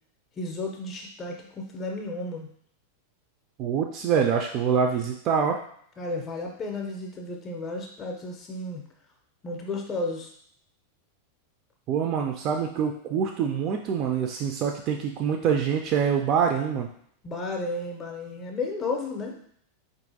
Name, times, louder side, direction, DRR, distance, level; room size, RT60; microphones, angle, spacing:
voice 1, 0.4-2.5 6.0-8.8 9.4-10.3 17.2-19.4, left 2 dB, 20° left, 1 dB, 0.5 m, -33 dB
voice 2, 3.6-5.6 11.9-16.9, right 7 dB, 35° right, 2 dB, 0.3 m, -25 dB
4.2 x 2.4 x 2.6 m, 0.65 s
figure-of-eight pair, 90°, 0 cm